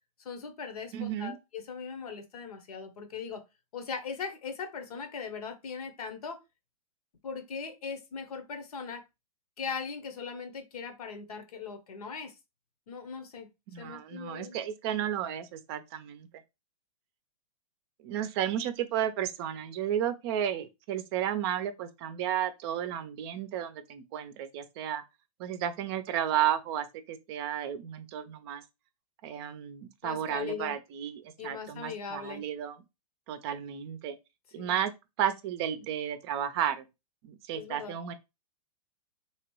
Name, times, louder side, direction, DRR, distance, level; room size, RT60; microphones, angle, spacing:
voice 1, 0.2-3.4 3.7-6.4 7.2-9.0 9.6-12.3 12.9-13.5 13.8-14.6 30.0-30.7 31.4-32.4 34.6-34.8 37.5-38.0, left 5 dB, 70° left, 0.9 m, -39 dB
voice 2, 0.9-1.4 13.7-16.3 18.0-25.0 25.4-28.6 29.2-32.8 33.3-34.2 34.5-34.9 35.2-36.8 37.2-38.1, right 10 dB, 40° right, 0.5 m, -33 dB
2.9 x 2.9 x 3.1 m
hypercardioid pair, 120°, 20 cm